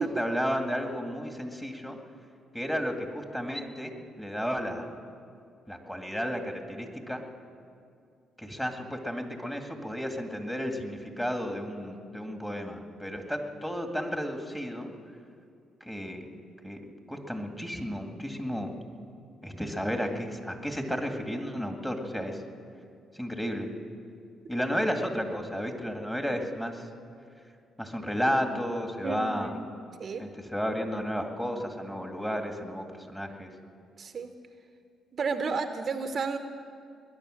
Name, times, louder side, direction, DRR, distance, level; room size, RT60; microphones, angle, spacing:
voice 1, 0.0-2.0 2.5-4.9 5.7-7.2 8.4-14.9 15.8-16.2 16.6-16.8 17.1-18.7 19.4-22.4 23.1-23.7 24.5-26.8 27.8-29.6 30.2-33.5, equal, 5° left, 4 dB, 2.0 m, -32 dB
voice 2, 29.0-29.6 30.0-30.3 34.0-34.3 35.1-36.4, right 4 dB, 50° right, 8 dB, 0.9 m, -32 dB
21.0 x 10.5 x 6.5 m, 2.4 s
cardioid pair, 90°, 0 cm